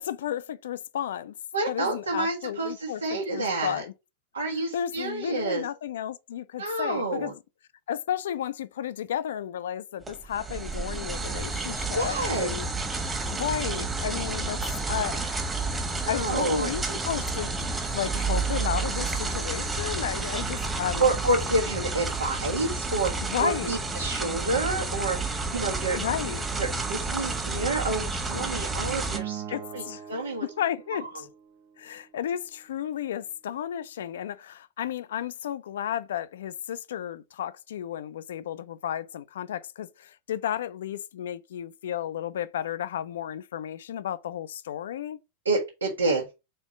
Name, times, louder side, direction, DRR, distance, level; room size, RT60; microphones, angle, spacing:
voice 1, 0.0-1.3 1.7-3.9 4.7-7.4 7.9-12.7 13.3-14.6 14.9-15.4 15.7-21.1 23.2-23.7 25.9-26.4 29.5-30.0 30.4-31.3 31.8-45.2, left 10 dB, 60° left, 0.5 m, -33 dB
voice 2, 1.5-3.8 4.3-5.6 6.6-7.3 12.0-12.5 16.0-17.0 21.0-26.0 26.6-29.8 30.1-30.4 30.9-31.0 45.4-46.3, right 2 dB, 75° right, 1.3 m, -29 dB
sound 1, 10.0-29.2, right 3 dB, 15° right, 1.3 m, -30 dB
Acoustic guitar, 29.1-31.5, right 10 dB, 45° right, 1.1 m, -40 dB
4.5 x 4.3 x 4.9 m
figure-of-eight pair, 90°, 0 cm